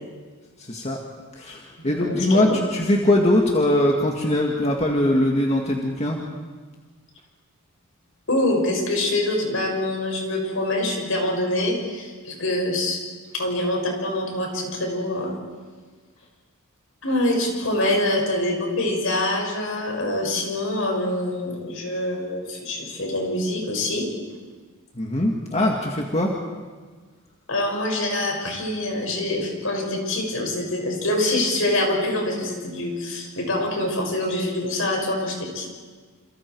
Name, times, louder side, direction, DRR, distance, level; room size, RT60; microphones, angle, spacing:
voice 1, 0.6-1.0 1.4-6.2 25.0-26.3, left 1 dB, 30° left, 0 dB, 2.0 m, -21 dB
voice 2, 1.8-2.6 8.3-13.0 13.3-15.4 17.0-24.1 27.5-35.7, left 1 dB, 65° left, 1 dB, 6.6 m, -25 dB
28.5 x 28.0 x 4.7 m, 1.4 s
head